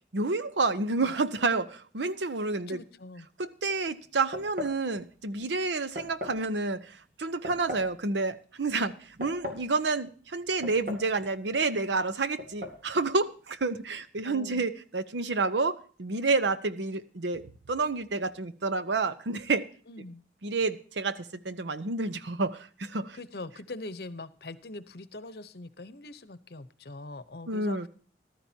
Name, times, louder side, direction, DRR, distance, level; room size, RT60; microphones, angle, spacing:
voice 1, 0.1-2.8 3.4-8.9 9.2-17.4 17.7-19.6 20.4-23.2 27.5-27.9, right 3 dB, 85° right, 13 dB, 0.8 m, -29 dB
voice 2, 2.7-3.3 14.2-14.7 19.9-20.2 23.1-27.9, left 2 dB, 60° left, 14 dB, 0.8 m, -42 dB
sound 1, 4.3-4.8 6.0-6.4 7.4-7.9 9.0-9.7 10.6-11.2 11.4-11.5 12.4-12.8, left 1 dB, 50° right, 2.4 m, -37 dB
14.5 x 13.0 x 2.8 m, 0.42 s
head